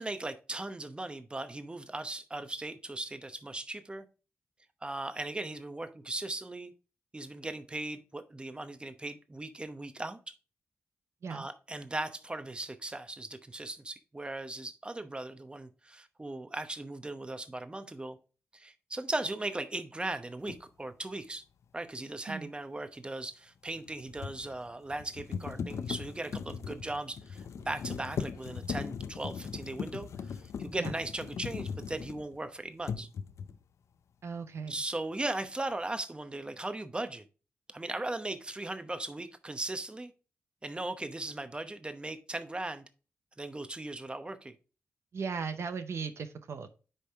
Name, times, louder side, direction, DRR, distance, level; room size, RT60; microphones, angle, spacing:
voice 1, 0.0-4.1 4.8-6.7 7.1-10.3 11.3-18.2 18.5-21.4 21.7-33.1 34.7-37.2 37.7-40.1 40.6-42.8 43.4-44.5, right 2 dB, 20° right, 0.8 m, -38 dB
sound 1, 20.5-20.6 23.7-32.5 32.8-33.6, left 6 dB, 75° left, 0.5 m, -39 dB
voice 2, 34.2-34.8 45.1-46.7, right 5 dB, 65° right, 0.7 m, -37 dB
9.8 x 3.4 x 3.5 m
cardioid pair, 65°, 5 cm